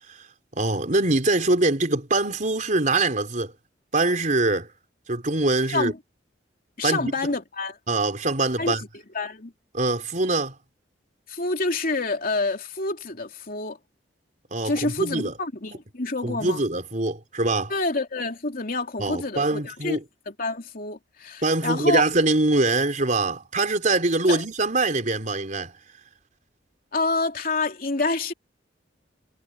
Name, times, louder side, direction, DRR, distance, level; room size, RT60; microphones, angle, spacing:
voice 1, 0.6-3.5 3.9-4.7 5.1-5.9 6.8-7.1 7.9-8.8 9.7-10.5 14.5-15.3 16.2-17.7 19.0-20.0 21.4-25.7, right 2 dB, 45° right, 4.2 m, -23 dB
voice 2, 6.8-7.8 8.6-8.8 9.1-9.5 11.3-13.8 14.6-16.6 17.7-20.0 20.3-22.0 24.3-24.4 26.9-28.3, left 3 dB, 50° left, 3.0 m, -27 dB
head